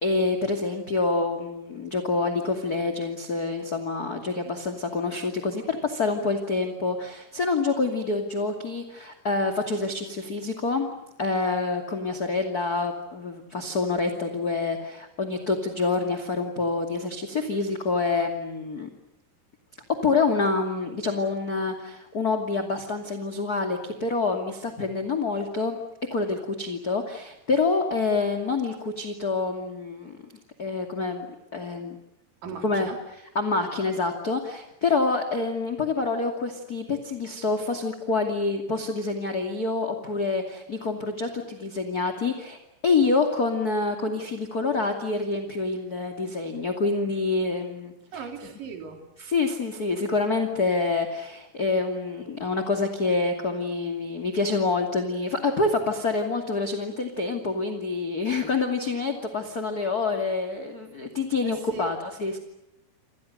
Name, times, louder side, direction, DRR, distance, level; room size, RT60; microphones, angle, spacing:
voice 1, 0.0-10.9 11.2-18.9 20.0-25.8 26.1-30.2 30.6-31.3 31.5-32.0 32.6-32.9 33.3-47.9 49.2-62.4, left 3 dB, 30° left, 4 dB, 2.2 m, -27 dB
voice 2, 32.4-33.0 48.1-49.0 61.4-62.0, right 5 dB, 55° right, 4 dB, 5.1 m, -38 dB
29.0 x 27.0 x 6.6 m, 0.87 s
omnidirectional pair, 4.9 m